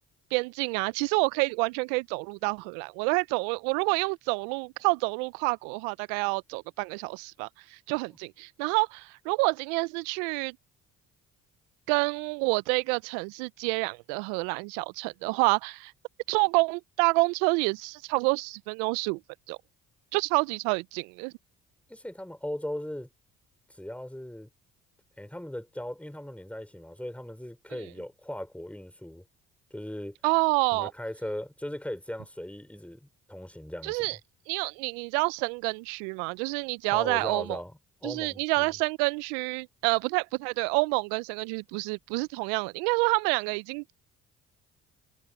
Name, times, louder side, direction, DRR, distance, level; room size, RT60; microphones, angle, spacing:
voice 1, 0.3-10.6 11.9-15.9 16.3-19.2 19.5-19.6 20.1-21.3 30.2-30.9 33.8-34.2 34.5-37.6 38.0-43.9, right 30 dB, 80° right, 0.6 m, -28 dB
voice 2, 21.9-23.1 23.7-24.5 25.2-29.2 29.7-30.2 30.7-34.1 36.9-38.7, left 1 dB, 5° left, 5.0 m, -38 dB
hypercardioid pair, 55°, 37 cm